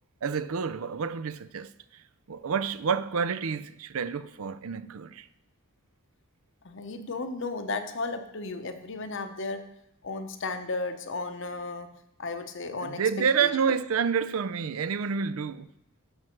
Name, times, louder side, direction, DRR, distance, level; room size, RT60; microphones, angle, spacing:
voice 1, 0.2-2.0 2.3-5.3 12.7-15.7, right 6 dB, 80° right, 0.5 m, -29 dB
voice 2, 6.6-9.6 10.0-11.9 12.2-13.0 13.4-13.5, left 3 dB, 60° left, 0.9 m, -34 dB
12.0 x 6.1 x 4.5 m
head